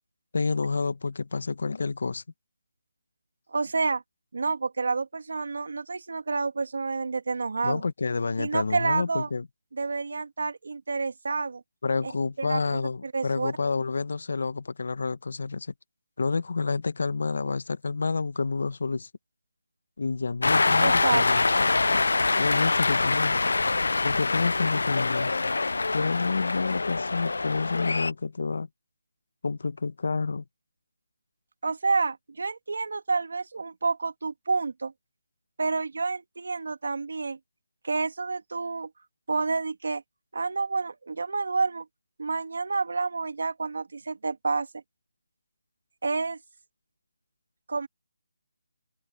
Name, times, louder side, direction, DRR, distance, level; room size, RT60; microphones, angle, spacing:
voice 1, 0.3-2.2 7.6-9.5 11.8-15.7 16.2-19.1 20.0-21.4 22.4-23.4 24.0-25.4 25.9-28.7 29.4-30.4, left 4 dB, 65° left, 1.0 m, -29 dB
voice 2, 3.5-4.0 4.3-7.8 8.4-9.3 9.7-11.6 12.0-12.1 12.4-12.6 13.0-13.5 20.8-21.2 31.6-34.9 35.6-37.4 37.8-38.9 39.3-40.0 40.3-41.9 42.2-44.7 46.0-46.4 47.7-47.9, right 4 dB, 65° right, 2.4 m, -29 dB
Cheering, 20.4-28.1, left 3 dB, 80° left, 0.4 m, -25 dB
open air
hypercardioid pair, 170°, 0 cm